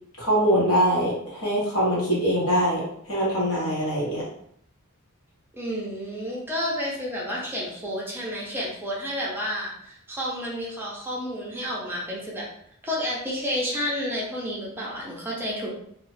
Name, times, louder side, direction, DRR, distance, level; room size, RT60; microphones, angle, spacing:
voice 1, 0.2-2.8 3.1-4.2, equal, 70° left, -6 dB, 1.2 m, -23 dB
voice 2, 5.5-12.4 12.8-15.7, equal, 10° right, -5 dB, 0.5 m, -30 dB
2.4 x 2.3 x 3.2 m, 0.71 s
head